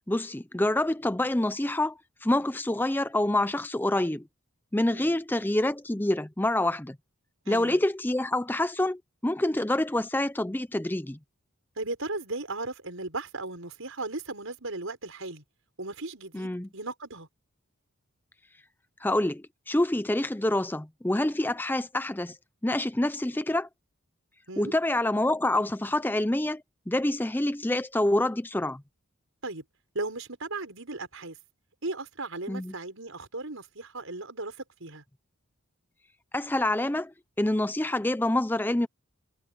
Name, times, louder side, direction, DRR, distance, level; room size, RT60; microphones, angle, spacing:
voice 1, 0.1-4.3 4.7-7.0 7.5-11.2 16.3-16.7 19.0-22.4 22.6-23.7 24.6-28.8 32.5-32.7 36.3-38.9, left 1 dB, 10° left, 0.5 m, -27 dB
voice 2, 7.5-7.8 11.8-15.4 15.8-17.3 24.5-24.7 29.4-29.6 29.9-31.4 31.8-34.6 34.8-35.0, right 2 dB, 75° right, 5.4 m, -36 dB
head